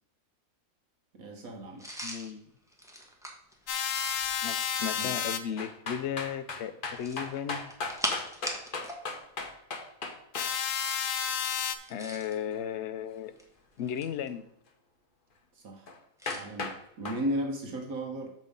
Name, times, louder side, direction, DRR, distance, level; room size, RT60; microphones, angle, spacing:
voice 1, 1.1-1.9 5.0-5.1 15.5-15.9 16.3-18.3, equal, 65° right, 3 dB, 1.4 m, -35 dB
sound 1, 1.8-4.5 6.9-9.0 9.3-9.5 11.7-12.4 13.2-14.3 16.2-16.4, equal, ahead, 1.1 m, -40 dB
voice 2, 2.0-2.5 4.4-7.7 11.9-13.4 13.8-14.5, left 9 dB, 70° left, 11 dB, 0.7 m, -35 dB
sound 2, 3.7-5.4 10.3-11.8, left 8 dB, 85° left, 1.3 m, -31 dB
sound 3, 5.6-10.5 15.9-16.0 16.3-16.8 17.0-17.2, left 3 dB, 40° left, 1.0 m, -36 dB
6.8 x 5.3 x 5.1 m, 0.81 s
omnidirectional pair, 1.6 m